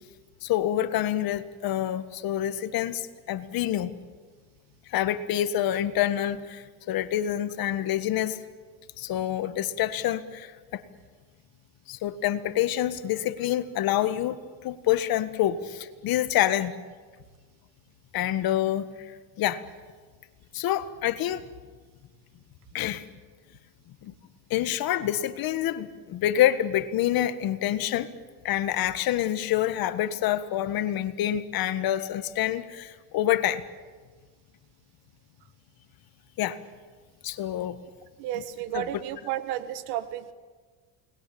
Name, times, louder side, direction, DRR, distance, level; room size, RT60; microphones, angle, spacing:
voice 1, 0.4-3.9 4.9-8.4 9.0-10.8 11.9-16.7 18.1-18.9 19.4-19.6 20.5-21.4 22.7-23.1 24.0-24.1 24.5-28.1 28.4-33.6 36.4-36.6 37.2-37.8 38.3-38.4 38.7-38.9, left 12 dB, 70° left, 11 dB, 1.7 m, -27 dB
voice 2, 38.2-40.3, right 12 dB, 90° right, 11 dB, 1.7 m, -32 dB
29.5 x 20.5 x 8.7 m, 1.5 s
cardioid pair, 95°, 37 cm